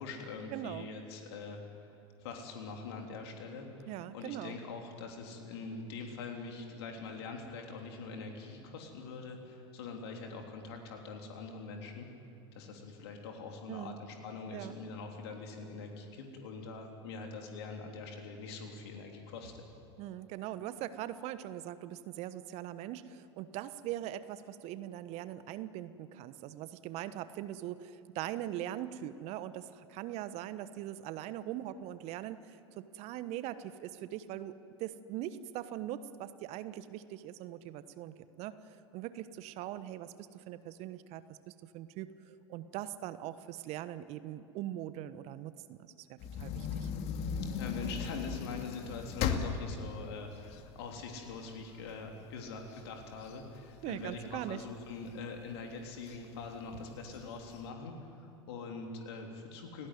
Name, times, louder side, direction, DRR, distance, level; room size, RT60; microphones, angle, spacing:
voice 1, 0.0-12.1 12.5-19.7 47.6-59.9, left 4 dB, 65° left, 2 dB, 3.4 m, -44 dB
voice 2, 0.5-0.9 3.9-4.6 13.7-14.0 14.5-14.8 20.0-46.9 53.8-54.6, right 12 dB, 50° right, 14 dB, 1.2 m, -41 dB
sound 1, 46.2-51.4 51.9-52.0 52.3-54.4 54.9-55.4 56.0-56.2 56.4-56.5 57.0-57.6, left 7 dB, 45° left, 2.2 m, -37 dB
30.0 x 18.5 x 9.4 m, 2.8 s
figure-of-eight pair, 80°, 15 cm